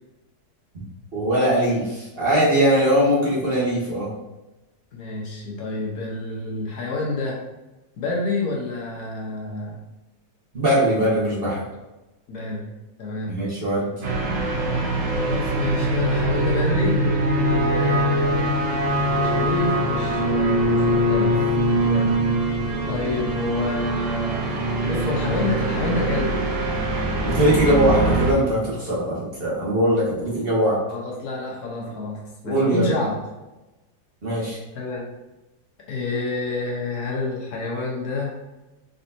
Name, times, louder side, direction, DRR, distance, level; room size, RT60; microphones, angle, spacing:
voice 1, 1.1-4.1 10.5-11.6 13.3-13.9 27.3-30.8 32.4-32.9 34.2-34.6, equal, 35° right, -7 dB, 1.4 m, -21 dB
voice 2, 4.9-7.4 8.0-9.8 12.3-12.7 13.0-13.3 15.1-17.0 17.3-18.5 19.1-21.4 21.9-22.2 22.9-24.4 24.8-26.4 30.9-33.2 34.7-35.0 35.9-38.4, left 3 dB, 70° left, -2 dB, 1.4 m, -28 dB
sound 1, 14.0-28.3, right 1 dB, 55° right, 1.1 m, -22 dB
4.3 x 4.0 x 2.7 m, 1.0 s
omnidirectional pair, 1.8 m